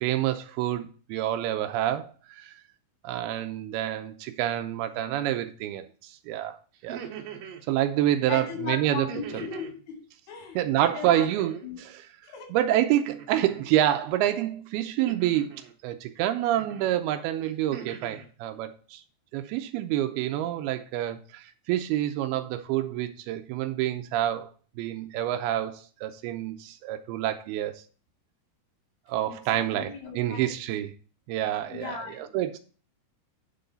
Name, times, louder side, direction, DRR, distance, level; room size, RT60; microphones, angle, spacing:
voice 1, 0.0-2.5 3.0-6.6 6.8-7.0 7.7-9.1 9.3-9.4 10.6-12.0 12.5-19.0 19.3-24.5 24.8-27.8 29.1-30.9 31.3-32.6, right 12 dB, 90° right, 2.6 m, -28 dB
sound 1, 6.7-7.7 9.1-9.8 11.1-11.7 13.1-13.6 15.1-15.7 16.6-17.0 17.4-18.3, right 8 dB, 70° right, 2.6 m, -42 dB
voice 2, 8.3-10.0 10.3-11.3 11.6-11.8 12.2-12.6 29.3-30.5 31.6-32.3, left 5 dB, 85° left, 4.6 m, -37 dB
9.0 x 3.9 x 6.8 m
omnidirectional pair, 4.4 m